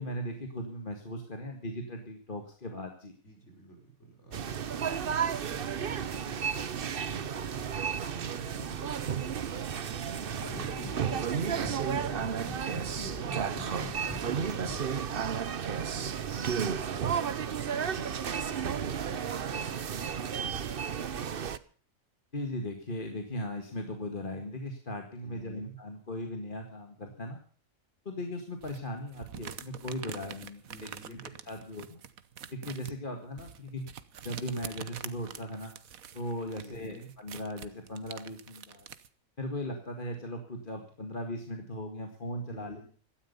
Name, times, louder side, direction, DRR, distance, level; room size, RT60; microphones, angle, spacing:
voice 1, 0.0-3.1 22.3-27.4 28.1-31.2 31.5-32.0 32.5-33.9 34.2-35.8 36.1-38.9 39.4-42.8, left 1 dB, 40° left, 4 dB, 2.1 m, -38 dB
voice 2, 3.2-7.7 8.0-9.4 18.5-20.1 25.2-25.8 30.7-31.3 36.5-37.1 42.5-42.9, right 3 dB, 55° left, 2 dB, 6.0 m, -50 dB
sound 1, 4.3-21.6, right 7 dB, 45° right, 0.9 m, -33 dB
sound 2, 10.4-14.8, left 3 dB, 15° left, 0.8 m, -43 dB
sound 3, 28.6-39.1, right 8 dB, 80° right, 1.4 m, -46 dB
17.5 x 13.0 x 5.4 m, 0.43 s
omnidirectional pair, 1.4 m